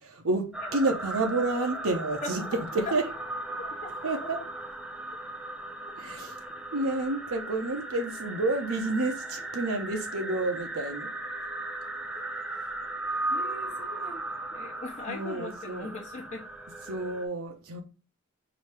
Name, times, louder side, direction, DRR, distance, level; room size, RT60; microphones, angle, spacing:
voice 1, 0.2-2.4 2.7-3.1 4.0-4.4 6.0-6.4 6.7-11.1 15.1-15.9 16.9-17.8, right 2 dB, 80° right, 0.8 m, -29 dB
sound 1, 0.5-17.3, right 2 dB, 5° right, 0.5 m, -37 dB
voice 2, 3.6-4.3 5.9-6.0 13.3-14.2 14.5-16.4, left 2 dB, 35° left, 0.7 m, -41 dB
4.9 x 2.8 x 3.2 m
head